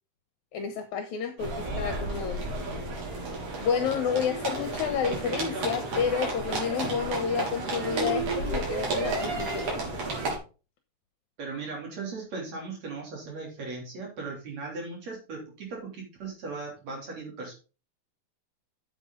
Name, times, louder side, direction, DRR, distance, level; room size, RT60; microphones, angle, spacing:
voice 1, 0.5-2.4 3.6-10.1, left 7 dB, 75° left, 6 dB, 2.4 m, -30 dB
sound 1, 1.4-10.4, right 2 dB, 80° right, 4.7 m, -32 dB
voice 2, 11.4-17.5, right 4 dB, 60° right, -1 dB, 4.5 m, -38 dB
9.6 x 8.0 x 3.8 m, 0.33 s
omnidirectional pair, 3.4 m